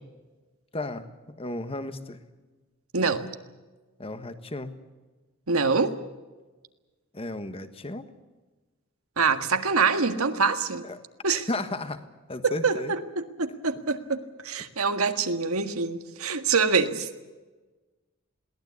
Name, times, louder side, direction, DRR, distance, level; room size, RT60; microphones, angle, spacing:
voice 1, 0.7-2.2 4.0-4.7 7.1-8.1 10.8-11.0 11.5-12.0 12.3-12.9 14.6-14.7, left 2 dB, 25° left, 10 dB, 1.5 m, -34 dB
voice 2, 2.9-3.3 5.5-5.9 9.2-10.8 11.2-11.5 12.4-17.1, right 4 dB, 90° right, 8 dB, 1.7 m, -25 dB
22.0 x 17.5 x 8.4 m, 1.2 s
head